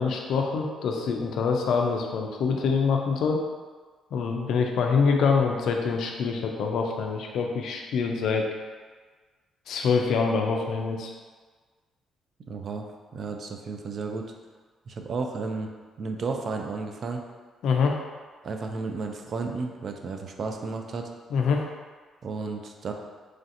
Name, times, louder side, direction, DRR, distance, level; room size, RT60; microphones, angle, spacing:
voice 1, 0.0-3.4 4.1-8.5 9.7-11.1 17.6-18.0 21.3-21.6, left 5 dB, 75° left, 2 dB, 0.3 m, -25 dB
voice 2, 12.5-12.8 13.1-14.3 14.9-15.7 16.0-17.3 18.4-21.1 22.2-22.9, right 4 dB, 50° right, 3 dB, 0.3 m, -33 dB
3.1 x 2.6 x 2.5 m, 1.4 s
cardioid pair, 90°, 0 cm